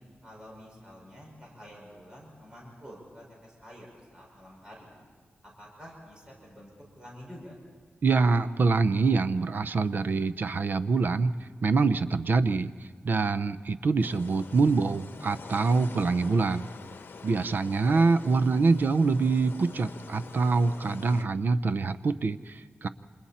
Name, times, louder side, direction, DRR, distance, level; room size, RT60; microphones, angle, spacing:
voice 1, 0.2-4.9 5.6-7.6 17.8-18.1, equal, 20° right, -3 dB, 5.7 m, -48 dB
voice 2, 8.0-11.3 11.6-12.7 13.0-16.7 17.2-22.9, right 4 dB, 55° right, 12 dB, 0.6 m, -25 dB
sound 1, 14.0-21.2, left 4 dB, 65° left, 1.2 m, -46 dB
28.5 x 27.0 x 4.3 m, 1.6 s
wide cardioid pair, 150°, 4 cm